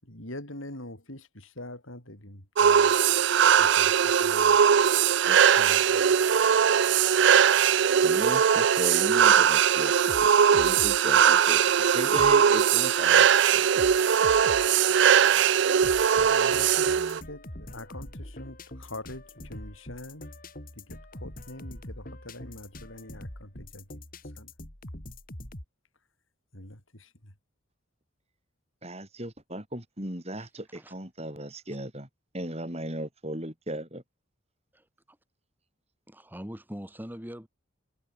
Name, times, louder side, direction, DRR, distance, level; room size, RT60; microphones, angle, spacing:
voice 1, 0.0-2.9 3.6-4.6 5.6-6.0 16.2-20.3 20.7-24.0 24.3-24.5 26.5-27.3, left 1 dB, 75° left, 7.8 m, -44 dB
sound 1, 2.6-17.2, right 8 dB, 60° right, 0.4 m, -20 dB
voice 2, 8.0-9.9 10.2-13.3 13.5-13.7 28.8-32.1 32.3-34.0, right 1 dB, 30° right, 7.9 m, -36 dB
sound 2, 9.2-25.7, left 1 dB, 45° left, 3.8 m, -44 dB
voice 3, 34.7-35.2 36.1-37.5, equal, 10° right, 3.5 m, -42 dB
head